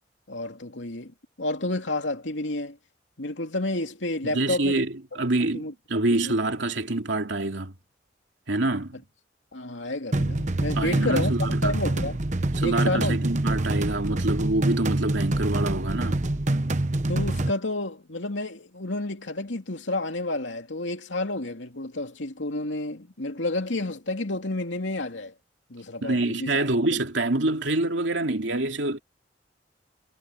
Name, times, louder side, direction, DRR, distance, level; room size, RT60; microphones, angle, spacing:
voice 1, 0.3-2.8 3.2-4.8 5.1-5.7 6.1-6.4 9.5-11.3 11.6-12.2 12.6-13.2 17.1-25.3 25.7-27.0, left 2 dB, 90° left, 2.6 m, -30 dB
voice 2, 4.3-7.7 8.5-9.0 10.8-11.7 12.6-16.2 26.0-29.0, right 2 dB, 80° right, 2.7 m, -26 dB
sound 1, 10.1-17.5, right 1 dB, 40° right, 1.1 m, -26 dB
head